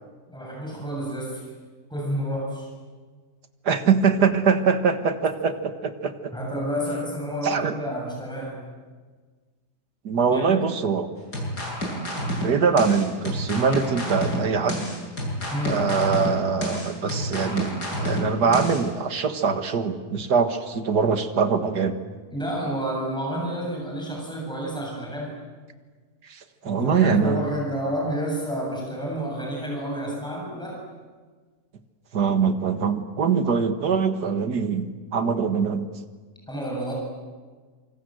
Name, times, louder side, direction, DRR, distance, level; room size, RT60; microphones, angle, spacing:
voice 1, 0.3-1.4 1.9-2.7 6.3-8.6 10.3-10.6 15.5-15.8 22.3-25.3 26.6-30.8 36.5-36.9, equal, ahead, -2 dB, 7.6 m, -30 dB
voice 2, 3.7-6.3 7.4-7.7 10.0-11.1 12.4-14.8 15.6-17.7 18.0-22.0 26.3-27.4 32.1-35.9, right 5 dB, 75° right, 8 dB, 2.2 m, -23 dB
sound 1, 11.3-18.8, equal, 75° left, 8.6 m, -29 dB
27.5 x 26.0 x 7.9 m, 1.4 s
omnidirectional pair, 1.7 m